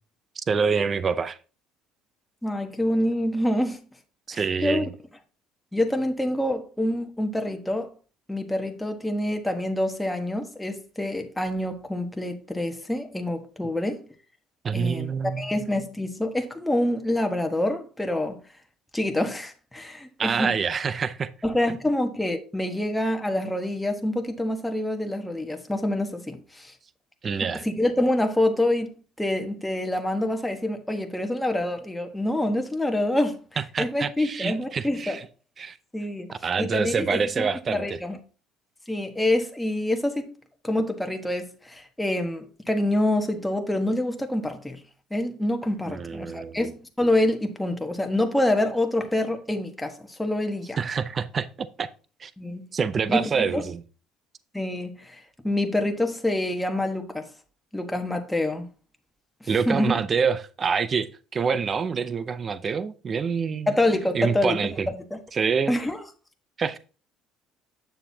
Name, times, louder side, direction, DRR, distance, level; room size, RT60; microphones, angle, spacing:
voice 1, 0.5-1.4 4.3-4.9 14.6-15.5 20.2-21.3 27.2-27.6 33.6-35.3 35.6-35.8 36.4-38.0 45.9-46.6 50.8-51.9 52.2-52.3 52.7-53.8 59.5-63.7 64.1-64.9 65.3-65.7 66.6-66.8, right 6 dB, 35° right, 0.6 m, -26 dB
voice 2, 2.4-3.8 4.3-4.8 5.7-7.9 8.3-14.0 14.7-15.1 15.4-18.4 18.9-20.5 21.4-26.7 27.4-28.9 29.2-33.4 33.8-35.2 35.9-36.3 36.6-37.2 37.7-38.2 38.9-40.3 40.6-44.8 45.1-50.8 52.4-52.6 53.1-53.6 54.5-57.3 57.7-58.7 59.4-59.9 63.7-64.6 65.1-65.2 65.7-66.0, left 1 dB, 5° left, 1.2 m, -26 dB
7.9 x 6.8 x 2.8 m
supercardioid pair, 85°, 0 cm